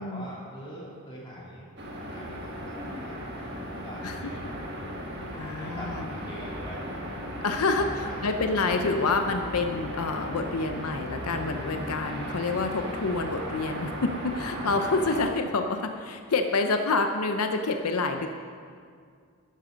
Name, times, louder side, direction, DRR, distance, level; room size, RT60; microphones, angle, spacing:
voice 1, 0.0-1.7 2.1-2.3 2.6-4.6 5.4-7.4 7.8-8.9, equal, 20° left, -5 dB, 2.8 m, -43 dB
sound 1, 1.8-15.2, equal, 50° right, 1.7 m, -36 dB
voice 2, 5.4-6.0 7.4-18.3, left 3 dB, 90° left, 6 dB, 0.7 m, -28 dB
12.0 x 10.0 x 5.2 m, 2.1 s
head